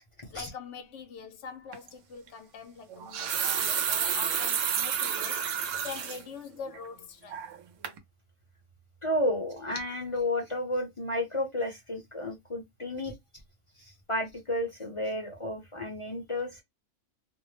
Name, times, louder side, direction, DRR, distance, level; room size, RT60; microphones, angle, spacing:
voice 1, 0.3-7.4, left 6 dB, 75° left, 0.9 m, -44 dB
sound 1, 1.7-1.9 2.9-6.2 6.7-6.8 7.3-7.6 7.8-8.0, right 8 dB, 80° right, 0.9 m, -30 dB
voice 2, 9.0-13.1 13.8-16.6, left 1 dB, 30° left, 0.6 m, -32 dB
2.5 x 2.0 x 3.2 m
omnidirectional pair, 1.3 m